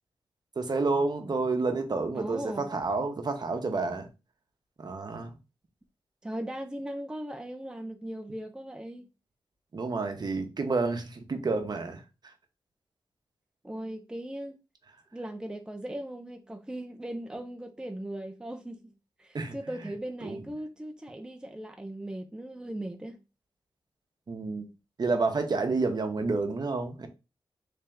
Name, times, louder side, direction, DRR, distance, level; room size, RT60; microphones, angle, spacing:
voice 1, 0.6-4.1 4.8-5.4 9.7-12.3 19.3-19.6 20.2-20.4 24.3-24.7 25.0-27.1, right 3 dB, 50° right, 0.8 m, -29 dB
voice 2, 2.2-2.7 6.2-9.1 13.6-14.6 15.1-18.8 19.2-23.2, right 1 dB, 10° right, 0.5 m, -38 dB
3.3 x 2.8 x 3.5 m
cardioid pair, 65°, 9 cm